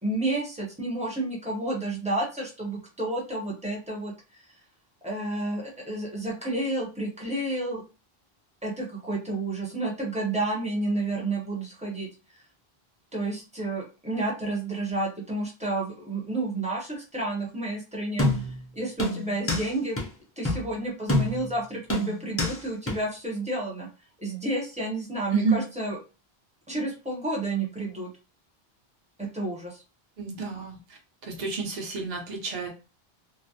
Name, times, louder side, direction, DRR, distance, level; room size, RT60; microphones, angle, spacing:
voice 1, 0.0-4.4 5.0-7.8 8.6-12.1 13.1-20.0 20.4-23.9 24.2-26.0 26.7-28.1 29.2-29.8, right 2 dB, 10° right, -3 dB, 0.7 m, -30 dB
sound 1, 18.2-18.6 19.0-19.7 20.0-20.1 20.4-20.7 21.1-21.5 21.9-22.6 22.9-23.0, left 1 dB, 20° left, 0.4 m, -26 dB
voice 2, 30.2-30.8 31.2-32.7, right 4 dB, 45° right, 0 dB, 0.8 m, -29 dB
2.3 x 2.1 x 2.7 m, 0.31 s
omnidirectional pair, 1.0 m